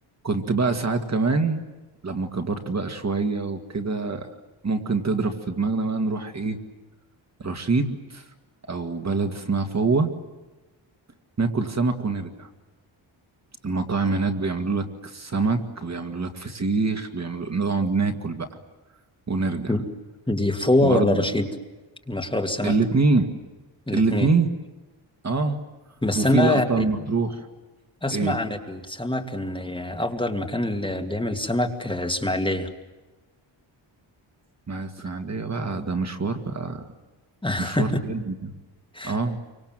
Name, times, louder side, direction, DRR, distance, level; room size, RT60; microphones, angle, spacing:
voice 1, 0.2-1.6 2.0-4.3 4.6-6.6 7.4-8.2 8.7-10.1 11.4-12.5 13.6-18.5 19.3-19.8 20.8-21.2 22.6-23.3 23.9-24.5 25.2-25.6 26.2-27.5 28.1-28.4 34.7-36.9 37.6-38.6 39.0-39.4, right 3 dB, 35° right, 6 dB, 2.1 m, -25 dB
voice 2, 20.3-21.5 22.1-22.7 23.9-24.3 26.0-26.8 28.0-32.7 37.4-38.0 38.9-39.2, left 1 dB, 10° left, 4 dB, 2.4 m, -24 dB
28.5 x 25.0 x 7.6 m, 1.2 s
wide cardioid pair, 145°, 46 cm